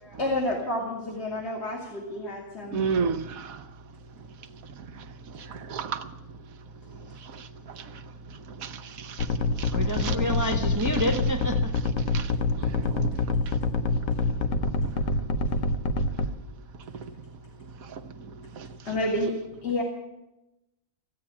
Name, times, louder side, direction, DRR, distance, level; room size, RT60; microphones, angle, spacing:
voice 1, 0.0-2.8 18.9-19.4 19.6-19.8, left 1 dB, 50° left, 2.2 m, -29 dB
voice 2, 2.7-3.6 5.5-6.1 7.3-7.4 7.8-7.9 8.6-9.3 9.6-10.2 12.1-12.3 12.6-13.1 18.6-18.7, right 5 dB, 80° right, 1.2 m, -32 dB
sound 1, 9.2-16.3, left 3 dB, 70° left, 1.2 m, -25 dB
voice 3, 9.7-11.7, equal, 15° right, 1.1 m, -28 dB
15.0 x 8.9 x 9.9 m
omnidirectional pair, 1.4 m